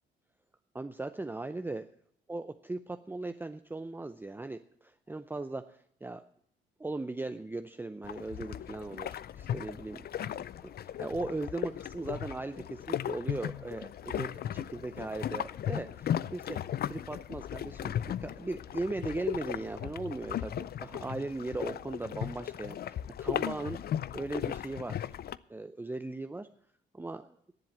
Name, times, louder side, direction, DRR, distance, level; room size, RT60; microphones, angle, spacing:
voice 1, 0.7-1.9 2.3-6.2 6.8-10.1 10.6-16.6 16.9-23.8 24.1-25.1 25.5-26.5 26.9-27.3, right 2 dB, 10° right, 9 dB, 0.6 m, -38 dB
sound 1, 8.0-25.4, left 10 dB, 50° left, 0.5 m, -37 dB
11.0 x 7.6 x 8.5 m, 0.66 s
cardioid pair, 90°, 20 cm